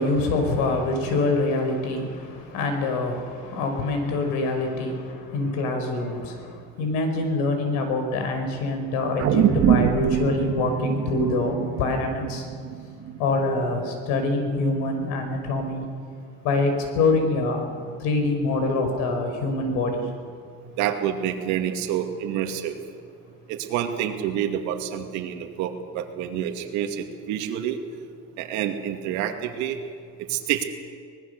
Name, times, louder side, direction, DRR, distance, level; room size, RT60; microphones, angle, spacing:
voice 1, 0.0-12.4 13.2-15.9 16.4-20.1, left 2 dB, 80° left, 5 dB, 5.2 m, -25 dB
sound 1, 9.2-13.7 14.1-14.2, right 10 dB, 50° right, 1.6 m, -24 dB
voice 2, 20.8-22.8 23.5-27.8 28.4-29.8 30.2-30.6, right 10 dB, 70° right, 4 dB, 2.5 m, -28 dB
24.5 x 20.0 x 6.8 m, 2.1 s
cardioid pair, 160°, 30 cm